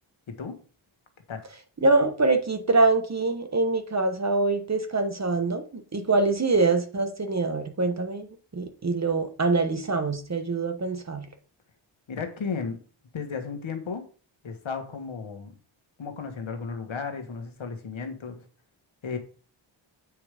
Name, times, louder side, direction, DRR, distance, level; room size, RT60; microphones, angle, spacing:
voice 1, 0.3-0.6 1.3-1.5 12.1-12.8 13.1-14.1 14.4-15.5 16.0-18.5 19.0-19.2, left 5 dB, 75° left, 1.7 m, -34 dB
voice 2, 1.8-8.3 8.5-11.3, right 3 dB, 35° right, 1.1 m, -24 dB
8.5 x 4.7 x 5.1 m
wide cardioid pair, 130°, 48 cm